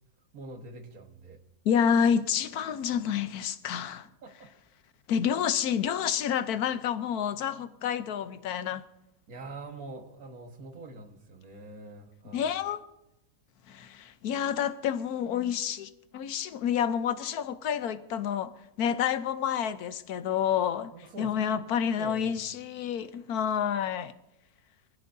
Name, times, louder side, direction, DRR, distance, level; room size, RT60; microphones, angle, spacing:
voice 1, 0.3-1.4 4.2-4.5 9.3-12.5 20.9-21.4 22.0-22.4, right 3 dB, 70° right, 1.9 m, -44 dB
voice 2, 1.7-4.1 5.1-8.8 12.3-12.8 13.7-18.5 18.8-20.9 21.2-24.1, left 8 dB, 90° left, 1.3 m, -29 dB
24.5 x 15.5 x 2.7 m
omnidirectional pair, 1.6 m